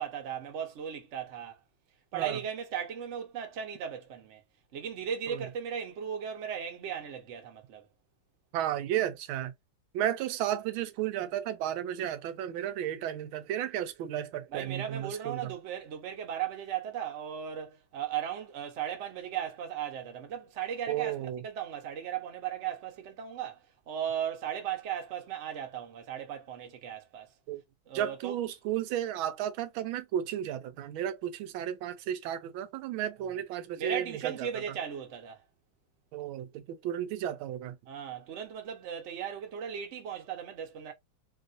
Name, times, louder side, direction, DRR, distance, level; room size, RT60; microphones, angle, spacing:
voice 1, 0.0-1.6 2.1-4.4 4.7-7.9 14.5-27.3 27.9-28.4 33.2-33.4 33.8-35.4 37.9-40.9, right 9 dB, 50° right, 0.9 m, -37 dB
voice 2, 8.5-9.5 9.9-15.5 20.9-21.4 27.5-27.6 27.9-34.5 36.1-37.7, right 11 dB, 85° right, 1.4 m, -33 dB
3.4 x 2.4 x 2.5 m
omnidirectional pair, 2.2 m